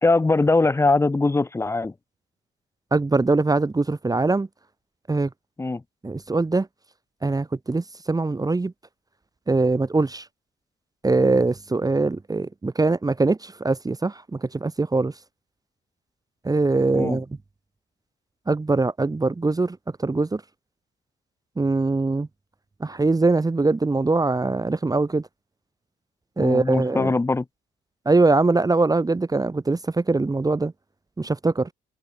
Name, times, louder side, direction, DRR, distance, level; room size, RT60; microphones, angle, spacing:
voice 1, 0.0-1.9 5.6-5.8 16.9-17.2 26.4-27.5, left 3 dB, 15° left, 0.5 m, -21 dB
voice 2, 2.9-4.5 5.1-5.3 6.0-6.7 7.2-8.7 9.5-10.2 11.0-15.1 16.4-17.3 18.5-20.4 21.6-22.3 22.8-25.2 26.4-27.1 28.0-30.7 31.2-31.7, right 3 dB, 20° right, 1.2 m, -22 dB
open air
cardioid pair, 90°, 20 cm